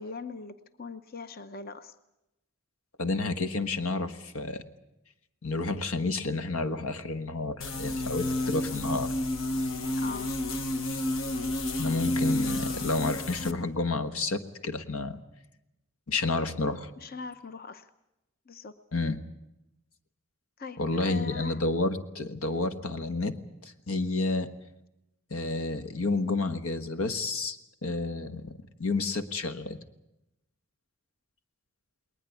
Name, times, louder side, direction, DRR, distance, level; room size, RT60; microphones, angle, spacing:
voice 1, 0.0-1.9 10.0-10.3 17.0-17.9 18.5-18.7 20.6-21.6, left 4 dB, 45° left, 11 dB, 0.8 m, -41 dB
voice 2, 3.0-4.6 5.4-9.1 11.8-15.2 16.1-16.9 18.9-19.2 20.8-23.3 23.6-24.5 25.3-27.6 27.8-28.5 28.8-29.8, left 3 dB, 90° left, 9 dB, 1.4 m, -30 dB
sound 1, 7.6-13.5, left 1 dB, 65° left, 1.2 m, -30 dB
20.5 x 19.5 x 8.3 m, 0.90 s
head